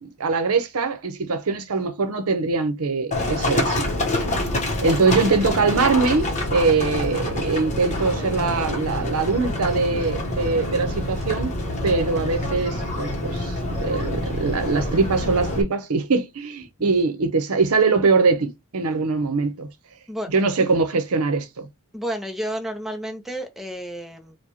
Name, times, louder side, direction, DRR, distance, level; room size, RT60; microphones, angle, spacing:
voice 1, 0.0-3.9 4.8-11.5 11.8-19.7 20.3-21.7, right 4 dB, 75° right, 0.7 m, -22 dB
Livestock farm animals working animals, 3.1-15.6, left 1 dB, 35° left, 0.9 m, -26 dB
voice 2, 21.9-24.4, equal, ahead, 0.6 m, -31 dB
4.7 x 2.2 x 2.8 m
head